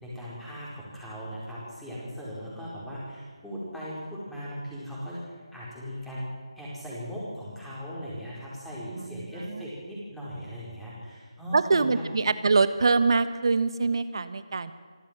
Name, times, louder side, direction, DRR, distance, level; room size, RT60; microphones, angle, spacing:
voice 1, 0.0-6.3 6.6-12.1, equal, 5° left, -8 dB, 4.8 m, -38 dB
voice 2, 8.9-9.7 11.5-14.7, right 4 dB, 55° right, 13 dB, 1.3 m, -24 dB
25.5 x 13.5 x 7.5 m, 1.5 s
figure-of-eight pair, 160°, 3 cm